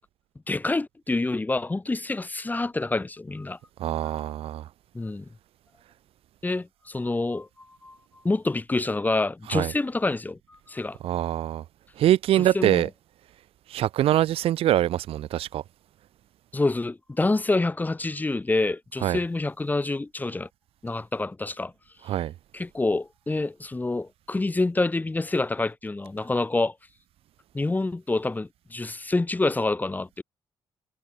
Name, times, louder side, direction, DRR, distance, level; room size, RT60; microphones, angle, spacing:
voice 1, 0.5-3.6 4.9-5.3 6.4-8.0 8.2-11.0 12.5-12.9 16.5-20.5 20.8-21.7 22.5-26.7 27.5-30.2, left 2 dB, 15° left, 5.2 m, -27 dB
voice 2, 3.8-4.7 9.5-9.7 11.0-11.6 12.0-12.9 13.7-15.6 19.0-19.2 22.1-22.3, right 12 dB, 80° right, 2.6 m, -24 dB
cardioid pair, 100°, 10 cm